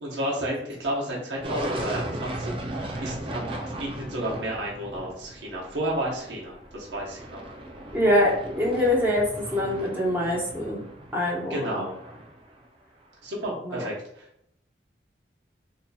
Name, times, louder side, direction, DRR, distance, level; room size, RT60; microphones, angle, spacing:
voice 1, 0.0-2.5 3.0-3.4 3.8-7.5 11.5-12.0 13.2-14.3, right 1 dB, 80° right, -4 dB, 0.9 m, -31 dB
sound 1, 1.4-12.6, right 1 dB, 30° right, 0.5 m, -36 dB
voice 2, 7.9-10.8 11.1-11.8 13.6-13.8, left 1 dB, 10° right, -5 dB, 1.0 m, -24 dB
4.1 x 2.7 x 2.3 m, 0.75 s
head